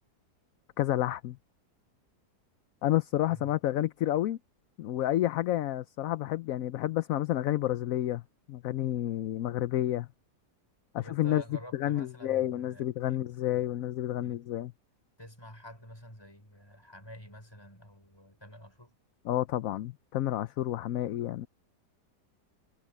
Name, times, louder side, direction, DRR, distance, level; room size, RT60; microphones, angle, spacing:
voice 1, 0.8-1.4 2.8-4.4 4.8-8.2 8.5-10.1 10.9-11.4 11.7-14.7 19.2-21.5, left 13 dB, 65° left, 0.9 m, -30 dB
voice 2, 11.0-13.7 14.2-14.4 15.2-19.0, equal, 15° left, 5.9 m, -49 dB
omnidirectional pair, 1.8 m